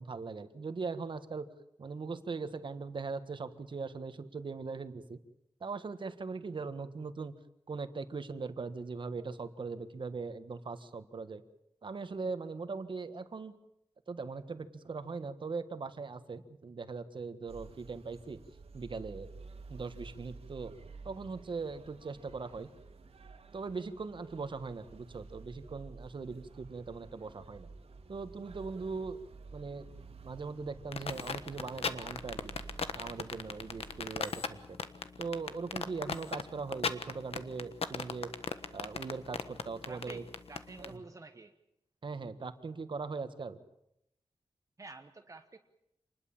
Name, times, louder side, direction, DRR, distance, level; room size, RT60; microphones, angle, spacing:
voice 1, 0.0-1.5 1.8-5.2 5.6-7.3 7.7-11.4 11.8-13.5 14.1-18.4 18.7-19.3 19.7-20.7 21.0-22.7 23.5-27.7 28.1-29.2 29.5-29.9 30.2-32.5 32.9-34.8 35.2-38.3 38.7-40.2 40.8-41.0 42.0-43.6, right 4 dB, 50° right, 10 dB, 1.6 m, -40 dB
sound 1, 17.5-34.2, right 4 dB, 75° right, 2.5 m, -52 dB
sound 2, 30.9-40.9, left 5 dB, 70° left, 1.4 m, -36 dB
voice 2, 39.9-41.5 44.8-45.6, right 3 dB, 30° right, 6 dB, 1.2 m, -49 dB
27.0 x 20.5 x 7.3 m, 0.80 s
wide cardioid pair, 155°, 10 cm